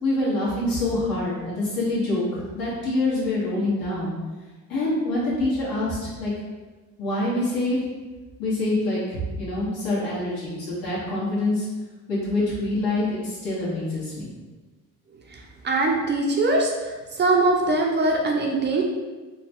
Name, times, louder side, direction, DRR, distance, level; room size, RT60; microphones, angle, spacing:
voice 1, 0.0-4.1 4.7-6.3 7.0-7.8 8.4-11.7 12.1-14.3, left 2 dB, 75° left, -7 dB, 1.4 m, -25 dB
voice 2, 15.6-16.7 17.1-18.8, right 2 dB, 30° right, 0 dB, 0.4 m, -21 dB
3.0 x 2.2 x 2.9 m, 1.3 s
cardioid pair, 105°, 34 cm